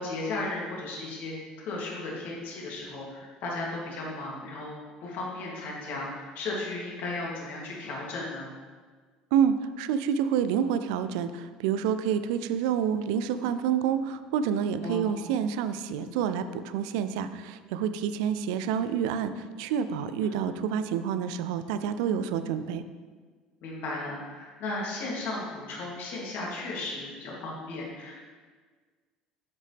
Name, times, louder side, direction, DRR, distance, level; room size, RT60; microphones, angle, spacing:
voice 1, 0.0-1.3 1.7-4.7 5.0-8.5 14.8-15.2 20.2-20.3 23.6-28.1, left 2 dB, 55° left, -4 dB, 2.9 m, -35 dB
voice 2, 9.3-22.8, right 8 dB, 65° right, 11 dB, 0.5 m, -28 dB
10.5 x 8.2 x 3.5 m, 1.5 s
figure-of-eight pair, 65°, 4 cm